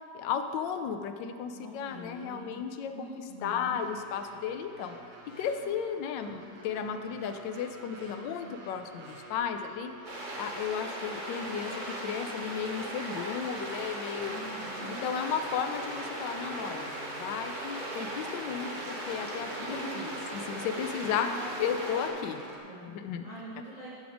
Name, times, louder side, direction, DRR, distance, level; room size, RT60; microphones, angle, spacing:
voice 1, 0.1-5.0 5.4-9.9 10.3-14.3 15.0-21.3 21.6-22.4 22.9-23.3, left 7 dB, 85° left, 7 dB, 1.3 m, -34 dB
voice 2, 1.6-2.5 2.9-3.8 8.0-8.5 14.3-15.1 19.6-20.2 21.1-22.3 22.6-23.0 23.2-23.9, equal, 25° left, -9 dB, 1.4 m, -44 dB
sound 1, 3.7-22.6, right 2 dB, 55° right, 1.6 m, -47 dB
sound 2, 10.0-22.1, right 1 dB, 30° right, 1.2 m, -38 dB
13.0 x 5.1 x 5.0 m, 2.5 s
omnidirectional pair, 1.9 m